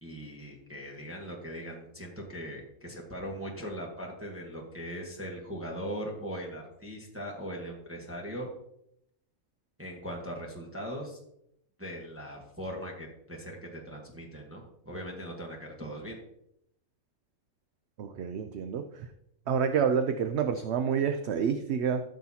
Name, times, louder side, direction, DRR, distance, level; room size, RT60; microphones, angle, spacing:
voice 1, 0.0-8.5 9.8-11.2 11.8-16.2, equal, 10° right, -1 dB, 1.3 m, -40 dB
voice 2, 18.0-19.1 19.5-22.0, right 7 dB, 60° right, 7 dB, 0.8 m, -28 dB
14.0 x 6.4 x 2.8 m, 0.77 s
omnidirectional pair, 1.4 m